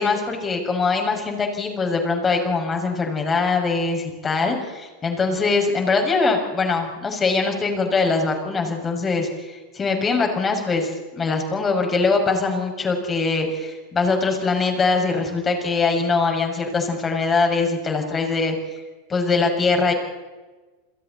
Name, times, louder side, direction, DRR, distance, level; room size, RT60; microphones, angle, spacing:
voice 1, 0.0-18.5 19.1-19.9, left 4 dB, 20° left, 3 dB, 6.0 m, -22 dB
29.5 x 22.5 x 4.2 m, 1.2 s
hypercardioid pair, 115°, 0 cm